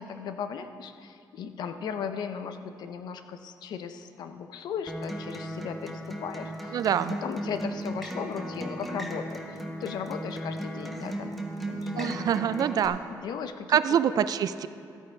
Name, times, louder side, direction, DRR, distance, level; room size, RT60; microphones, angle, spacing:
voice 1, 0.0-11.4 11.7-12.3 13.1-14.0, left 7 dB, 80° left, 9 dB, 0.7 m, -37 dB
Acoustic guitar, 4.9-12.9, right 1 dB, ahead, 1.2 m, -36 dB
voice 2, 6.7-7.1 12.0-13.0 13.7-14.7, right 9 dB, 60° right, 14 dB, 0.4 m, -25 dB
13.5 x 8.7 x 4.5 m, 2.4 s
cardioid pair, 105°, 7 cm